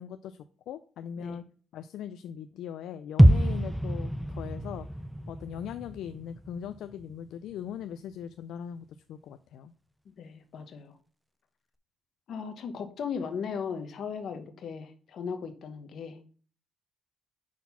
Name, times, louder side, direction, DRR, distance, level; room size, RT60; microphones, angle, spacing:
voice 1, 0.0-1.4 1.7-4.9 5.3-9.7, left 9 dB, 80° left, 11 dB, 0.4 m, -40 dB
sound 1, 3.2-7.1 7.4-7.5, equal, 5° right, 0.4 m, -25 dB
voice 2, 10.2-11.0 12.3-16.2, left 6 dB, 65° left, 8 dB, 1.0 m, -37 dB
6.0 x 4.2 x 5.5 m, 0.42 s
cardioid pair, 90°, 0 cm